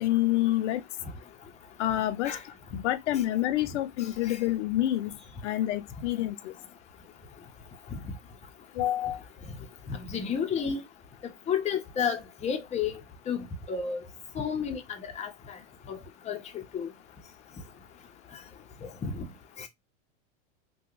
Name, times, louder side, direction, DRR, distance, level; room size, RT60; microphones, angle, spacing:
voice 1, 0.0-0.8 1.8-2.4 2.7-5.2 5.4-6.5 8.7-9.2, left 14 dB, 75° left, 0.5 m, -27 dB
voice 2, 9.9-10.8 11.2-13.0 13.3-14.0 14.4-14.8 15.2-15.6 15.9-16.0 16.3-16.4 16.7-16.9 18.8-19.2 19.6-19.7, left 7 dB, 20° left, 0.7 m, -31 dB
3.4 x 2.3 x 2.9 m
hypercardioid pair, 115°, 36 cm